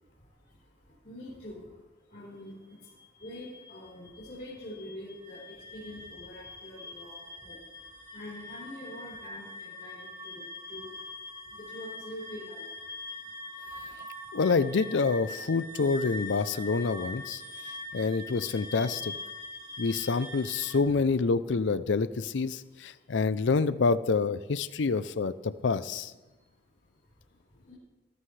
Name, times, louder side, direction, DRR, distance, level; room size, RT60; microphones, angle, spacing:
voice 1, 0.0-11.1 11.4-12.8 13.4-13.9 17.6-18.0 19.7-19.8 22.6-23.2 26.3-27.7, left 1 dB, 45° left, -8 dB, 4.1 m, -46 dB
sound 1, 2.9-20.8, left 2 dB, 20° right, 1.9 m, -43 dB
voice 2, 14.3-17.4 17.9-19.1 19.8-26.1, left 4 dB, 85° left, 15 dB, 0.5 m, -27 dB
18.5 x 13.5 x 3.3 m, 1.2 s
head